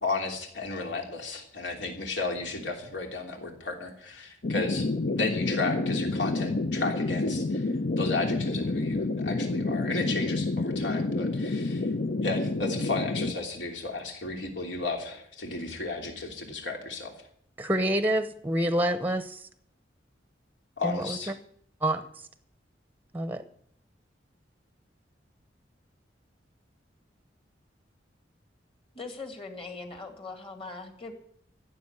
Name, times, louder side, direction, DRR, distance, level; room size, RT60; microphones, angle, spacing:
voice 1, 0.0-7.7 8.0-11.9 12.2-17.1 20.8-21.3, left 3 dB, 75° left, 2 dB, 3.1 m, -33 dB
sound 1, 4.4-13.3, left 2 dB, 55° left, 0.7 m, -29 dB
voice 2, 17.6-19.5 20.8-21.2 21.8-22.0 23.1-23.4, right 1 dB, 10° right, 11 dB, 0.8 m, -27 dB
voice 3, 28.9-31.1, left 3 dB, 30° left, 5 dB, 2.1 m, -40 dB
15.5 x 7.3 x 9.6 m, 0.65 s
head